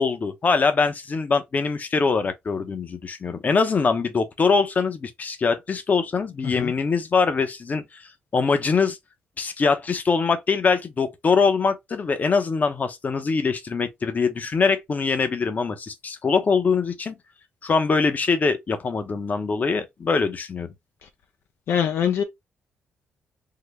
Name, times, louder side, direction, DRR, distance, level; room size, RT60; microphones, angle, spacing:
voice 1, 0.0-9.0 9.4-17.2 17.6-20.7, left 4 dB, 40° left, 0.8 m, -23 dB
voice 2, 21.7-22.2, left 8 dB, 70° left, 0.5 m, -23 dB
3.8 x 2.1 x 3.2 m
cardioid pair, 85°, 4 cm